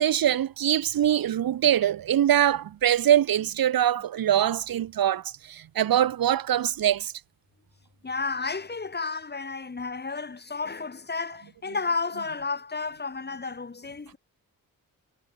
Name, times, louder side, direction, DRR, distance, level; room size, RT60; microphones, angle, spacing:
voice 1, 0.0-5.2 5.5-7.1, right 11 dB, 80° right, 1.1 m, -23 dB
voice 2, 8.0-14.2, left 4 dB, 30° left, 4.4 m, -32 dB
wide cardioid pair, 160°, 35 cm